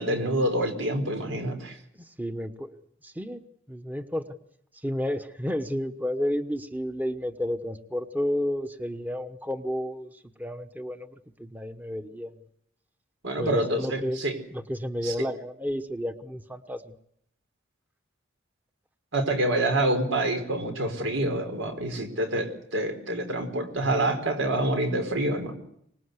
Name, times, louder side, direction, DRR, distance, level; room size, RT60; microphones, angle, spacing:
voice 1, 0.0-1.8 13.2-14.4 15.0-15.1 19.1-25.5, right 1 dB, 85° right, 6 dB, 4.8 m, -27 dB
voice 2, 1.9-2.8 3.0-3.4 3.7-4.2 4.7-11.1 11.4-12.4 13.4-14.2 14.5-16.9, equal, 10° right, 8 dB, 1.0 m, -31 dB
24.5 x 20.0 x 8.2 m, 0.72 s
head